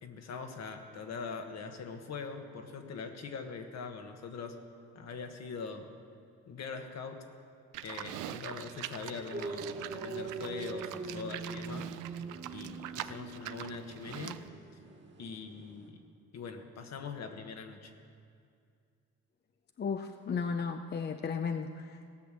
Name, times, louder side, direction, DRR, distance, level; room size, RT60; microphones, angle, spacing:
voice 1, 0.0-4.5 4.9-5.9 6.5-7.2 7.8-11.9 12.5-14.4 15.2-16.0 16.3-17.9, left 5 dB, 60° left, 5 dB, 1.3 m, -42 dB
Livestock farm animals working animals, 7.7-14.5, right 12 dB, 90° right, 0.5 m, -44 dB
sound 1, 9.3-15.9, right 3 dB, 35° right, 1.9 m, -42 dB
voice 2, 19.8-22.1, left 5 dB, 35° left, 7 dB, 0.5 m, -34 dB
17.5 x 6.1 x 7.5 m, 2.3 s
cardioid pair, 90°, 30 cm